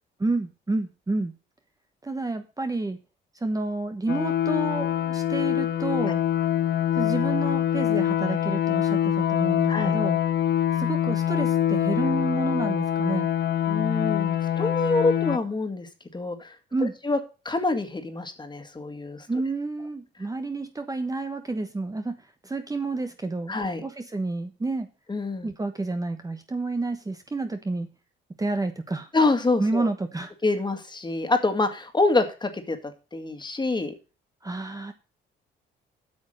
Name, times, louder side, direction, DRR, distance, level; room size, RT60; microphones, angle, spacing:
voice 1, 0.2-1.3 2.0-3.0 3.3-6.2 7.0-10.2 10.7-13.3 16.7-16.9 19.3-22.1 22.4-23.6 23.8-24.9 25.4-27.9 28.4-29.1 29.6-30.3 34.4-34.9, right 2 dB, 15° right, 7 dB, 1.1 m, -29 dB
sound 1, 4.1-15.4, left 10 dB, 60° left, 1.1 m, -25 dB
voice 2, 13.7-16.6 17.0-17.2 17.5-19.3 23.5-23.8 25.1-25.5 29.1-29.9 30.4-33.9, left 3 dB, 20° left, 8 dB, 2.0 m, -26 dB
8.8 x 6.1 x 6.5 m, 0.33 s
cardioid pair, 90°, 20 cm